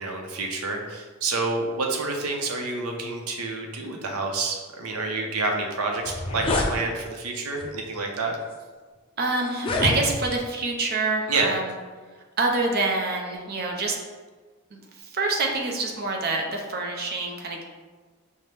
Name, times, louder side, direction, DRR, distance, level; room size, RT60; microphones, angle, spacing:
voice 1, 0.0-8.3 11.3-11.5, right 3 dB, 85° right, 2 dB, 0.6 m, -28 dB
sound 1, 5.6-5.7 6.0-6.7 7.6-7.8 8.5-8.6 9.5-10.4, left 2 dB, 25° left, 0.3 m, -26 dB
voice 2, 9.2-11.6 12.4-14.0 14.7-17.6, right 3 dB, 45° right, 1 dB, 0.6 m, -26 dB
5.5 x 2.1 x 3.3 m, 1.4 s
head